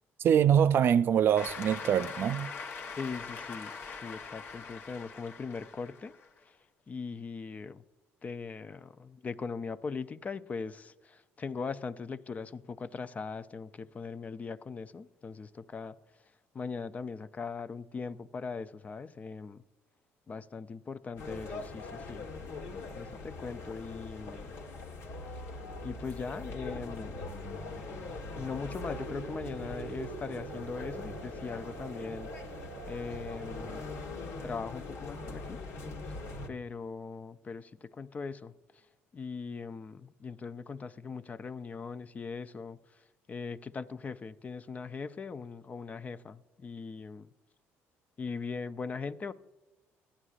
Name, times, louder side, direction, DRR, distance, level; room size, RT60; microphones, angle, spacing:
voice 1, 0.2-2.5, right 9 dB, 50° right, 0.4 m, -24 dB
Cheering / Applause, 1.4-6.3, left 5 dB, 55° left, 0.9 m, -42 dB
voice 2, 3.0-6.1 6.4-6.6 6.9-7.8 8.2-19.6 20.3-22.3 23.0-24.5 25.8-27.2 28.4-32.5 32.9-33.8 34.4-35.6 36.5-38.9 39.1-47.3 48.2-49.3, left 5 dB, 30° left, 0.5 m, -40 dB
sound 1, 21.2-36.5, left 3 dB, 75° left, 1.4 m, -42 dB
sound 2, 28.7-33.9, right 8 dB, 85° right, 0.7 m, -46 dB
15.5 x 9.9 x 2.4 m
cardioid pair, 95°, 5 cm